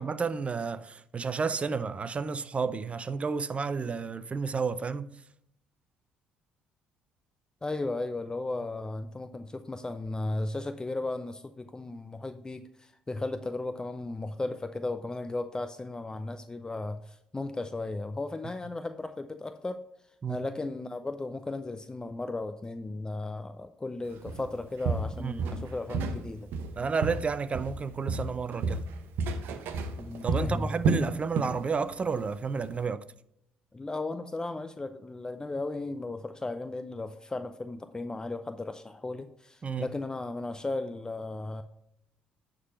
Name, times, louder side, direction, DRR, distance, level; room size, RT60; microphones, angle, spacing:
voice 1, 0.0-5.1 20.2-20.5 25.2-25.7 26.8-28.8 29.5-29.6 30.2-33.0 39.6-39.9, right 5 dB, 35° right, 0.5 m, -31 dB
voice 2, 7.6-19.8 20.3-26.5 30.0-30.7 33.7-41.6, left 2 dB, 20° left, 0.5 m, -35 dB
Walk footsteps, 24.3-24.5 24.8-26.2 26.5-27.8 28.1-31.6 31.9-32.2 32.6-32.7, right 4 dB, 65° right, 0.8 m, -30 dB
9.5 x 3.9 x 5.4 m
hypercardioid pair, 55°, 4 cm